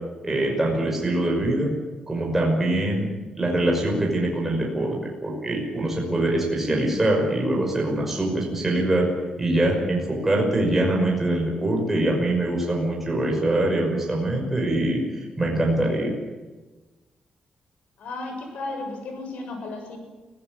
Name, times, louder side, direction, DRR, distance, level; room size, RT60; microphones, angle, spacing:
voice 1, 0.2-1.7 2.1-3.1 3.4-9.1 9.4-15.0 15.4-16.1, right 1 dB, 10° right, -1 dB, 5.8 m, -23 dB
voice 2, 18.0-20.0, left 2 dB, 75° left, 5 dB, 7.1 m, -34 dB
24.0 x 16.0 x 9.7 m, 1.2 s
wide cardioid pair, 150°, 2 cm